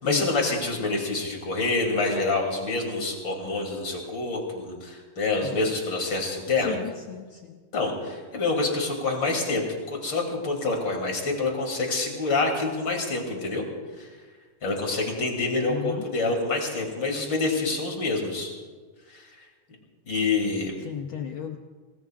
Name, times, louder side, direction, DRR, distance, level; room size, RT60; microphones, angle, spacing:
voice 1, 0.0-6.8 7.7-13.6 13.9-14.1 14.6-18.5 19.1-19.4 20.1-20.7, left 3 dB, 40° left, 1 dB, 3.4 m, -27 dB
voice 2, 6.6-7.2 15.7-16.0 20.8-21.6, left 8 dB, 85° left, 4 dB, 1.1 m, -33 dB
26.5 x 19.5 x 2.4 m, 1.5 s
omnidirectional pair, 3.3 m